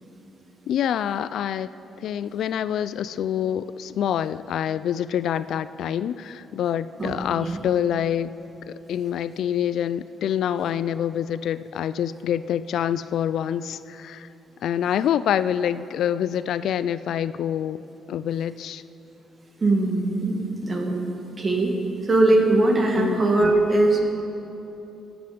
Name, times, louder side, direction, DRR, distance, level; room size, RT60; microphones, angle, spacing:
voice 1, 0.7-1.7 2.0-8.3 8.7-14.3 14.6-17.8 18.1-18.8 23.0-23.2, left 9 dB, 75° left, 15 dB, 0.3 m, -26 dB
voice 2, 19.6-21.7 22.0-24.0, right 2 dB, 35° right, 2 dB, 1.9 m, -21 dB
18.0 x 7.9 x 5.1 m, 3.0 s
cardioid pair, 90°, 0 cm